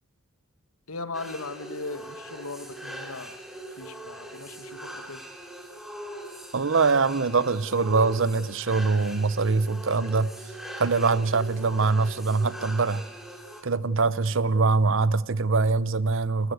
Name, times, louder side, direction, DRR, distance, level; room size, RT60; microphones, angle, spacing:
voice 1, 0.9-3.4 3.8-5.2, left 3 dB, 85° left, 1.4 m, -38 dB
sound 1, 1.1-13.6, right 1 dB, ahead, 2.9 m, -41 dB
voice 2, 6.5-10.3 10.8-13.0 13.6-16.5, right 4 dB, 60° right, 0.7 m, -23 dB
30.0 x 15.0 x 8.1 m
head